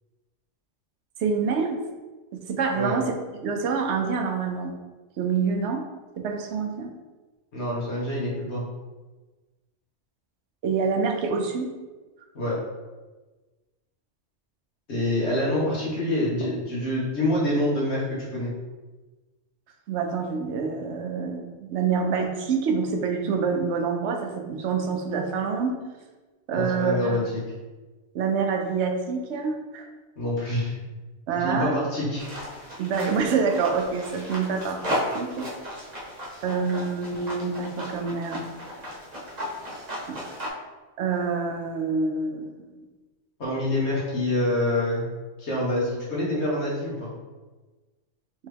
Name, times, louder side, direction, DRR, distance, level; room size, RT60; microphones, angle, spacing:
voice 1, 1.2-1.8 2.3-3.0 3.4-4.7 5.2-5.8 6.2-6.9 10.6-11.7 19.9-25.8 26.5-27.2 28.1-29.9 31.3-31.8 32.8-34.8 35.1-35.5 36.4-38.4 40.1-40.2 41.0-42.5, right 5 dB, 70° right, 4 dB, 0.8 m, -26 dB
voice 2, 7.5-8.6 12.3-12.6 14.9-18.5 26.5-27.4 30.2-30.7 31.4-32.2 43.4-45.0 45.4-47.1, left 1 dB, 65° left, -6 dB, 1.5 m, -26 dB
sound 1, 32.2-40.5, equal, 35° right, 1.0 m, -35 dB
3.5 x 3.2 x 3.4 m, 1.2 s
omnidirectional pair, 1.3 m